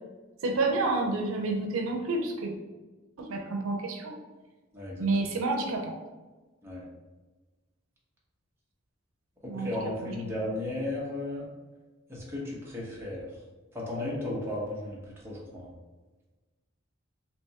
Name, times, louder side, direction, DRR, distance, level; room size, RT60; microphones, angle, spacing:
voice 1, 0.4-2.5 3.2-4.2 5.0-6.0 9.5-10.2, right 3 dB, 85° right, 2 dB, 0.6 m, -29 dB
voice 2, 4.7-5.0 6.6-6.8 9.4-11.4 12.1-13.3 13.7-15.0 15.2-15.7, left 1 dB, 10° right, -5 dB, 0.8 m, -34 dB
3.4 x 2.9 x 2.8 m, 1.2 s
head